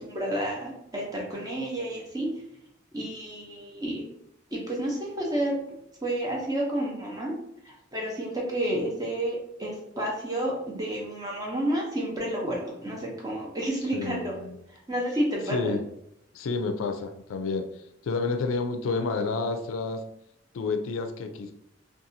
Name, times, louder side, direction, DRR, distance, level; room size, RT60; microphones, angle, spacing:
voice 1, 0.0-2.3 2.9-4.0 4.5-5.5 6.0-7.3 7.6-14.3 14.7-15.7, right 1 dB, 20° right, -2 dB, 0.7 m, -30 dB
voice 2, 13.9-14.6 15.5-15.8 16.3-17.7 18.0-20.0 20.5-21.5, left 4 dB, 90° left, 7 dB, 0.3 m, -29 dB
2.7 x 2.3 x 2.6 m, 0.78 s
head